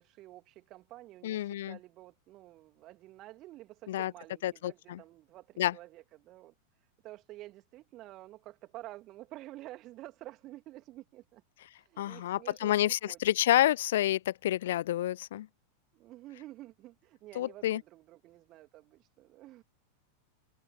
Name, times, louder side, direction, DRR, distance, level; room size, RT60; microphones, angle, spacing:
voice 1, 0.0-11.4 11.7-13.2 15.9-19.6, right 16 dB, 35° right, 2.6 m, -50 dB
voice 2, 1.2-1.8 3.9-4.1 4.4-5.0 5.6-5.7 12.0-15.5 17.4-17.8, left 13 dB, 60° left, 0.3 m, -29 dB
figure-of-eight pair, 90°, 0 cm